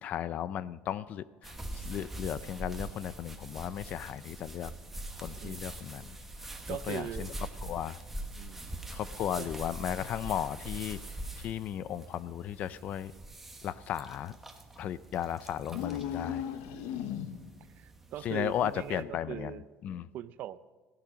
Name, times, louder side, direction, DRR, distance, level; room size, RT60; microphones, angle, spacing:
voice 1, 0.0-4.7 5.2-6.2 6.7-7.3 7.6-8.0 8.9-11.0 11.4-13.1 13.6-14.4 14.8-16.4 18.2-20.1, left 10 dB, 45° left, 18 dB, 0.4 m, -35 dB
sound 1, 1.4-19.0, right 1 dB, 5° right, 1.2 m, -44 dB
voice 2, 6.7-7.3 8.4-8.6 9.4-9.5 16.9-17.2 17.7-19.7 20.1-20.6, right 11 dB, 50° right, 16 dB, 0.5 m, -40 dB
sound 2, 15.6-17.6, left 9 dB, 85° left, 0.9 m, -36 dB
15.0 x 10.5 x 5.1 m, 1.4 s
cardioid pair, 145°, 4 cm